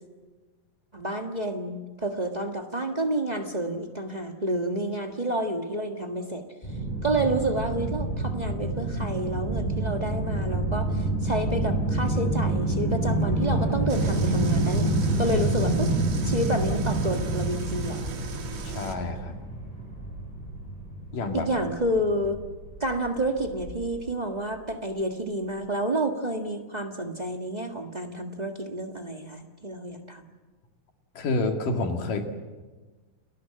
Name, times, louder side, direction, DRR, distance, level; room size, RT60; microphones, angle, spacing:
voice 1, 0.9-6.4 7.0-15.9 16.2-18.1 21.3-22.4 22.8-30.2, right 1 dB, 35° right, 3 dB, 0.6 m, -29 dB
sound 1, 6.6-24.0, right 2 dB, 10° left, 7.2 m, -27 dB
sound 2, 13.9-19.0, right 5 dB, 55° right, 3.1 m, -40 dB
voice 2, 18.6-19.4 21.1-21.5 31.2-32.2, left 3 dB, 75° left, 4 dB, 3.8 m, -28 dB
30.0 x 19.0 x 7.7 m, 1.3 s
omnidirectional pair, 3.9 m